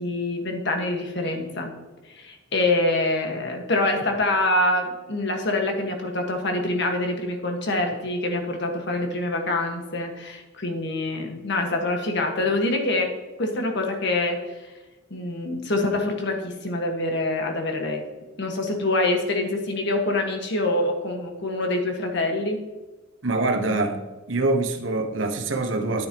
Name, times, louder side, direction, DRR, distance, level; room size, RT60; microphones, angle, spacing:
voice 1, 0.0-1.7 2.1-14.7 15.1-18.0 18.4-22.6, left 2 dB, 60° left, 1.6 m, -25 dB
voice 2, 23.2-24.0 24.3-26.1, right 2 dB, 70° right, 1.1 m, -24 dB
10.5 x 9.0 x 3.0 m
head